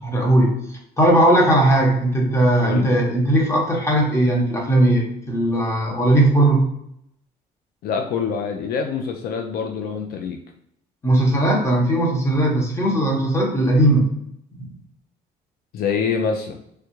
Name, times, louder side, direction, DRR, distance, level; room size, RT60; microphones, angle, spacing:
voice 1, 0.0-6.7 11.0-14.1 14.5-14.7, right 1 dB, 15° left, -1 dB, 0.9 m, -18 dB
voice 2, 2.6-2.9 7.8-10.4 15.7-16.6, left 6 dB, 65° left, 4 dB, 0.4 m, -25 dB
3.3 x 2.4 x 3.0 m, 0.74 s
cardioid pair, 110°, 17 cm